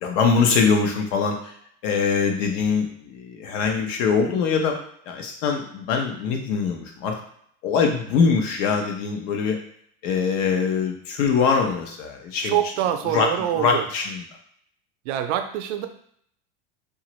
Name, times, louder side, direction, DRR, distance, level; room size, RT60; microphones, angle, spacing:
voice 1, 0.0-1.5 1.8-4.8 5.1-7.1 7.6-9.6 10.0-12.6 13.0-14.2, left 5 dB, 80° left, 3 dB, 0.8 m, -23 dB
voice 2, 12.4-13.8 15.1-15.9, right 11 dB, 75° right, 8 dB, 0.5 m, -25 dB
2.9 x 2.4 x 3.0 m, 0.67 s
cardioid pair, 155°, 37 cm